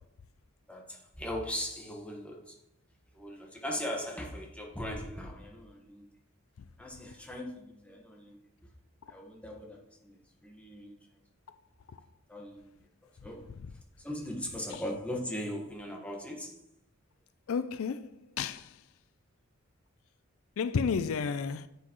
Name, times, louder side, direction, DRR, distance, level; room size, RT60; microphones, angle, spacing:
voice 1, 0.7-2.5 3.1-6.0 6.8-8.4 9.1-10.9 12.3-12.7 13.2-13.5 14.0-16.6, left 1 dB, 5° left, 1.4 m, -39 dB
voice 2, 17.5-18.1 18.4-18.7 20.6-21.7, left 6 dB, 75° left, 0.4 m, -31 dB
10.0 x 8.0 x 3.0 m
head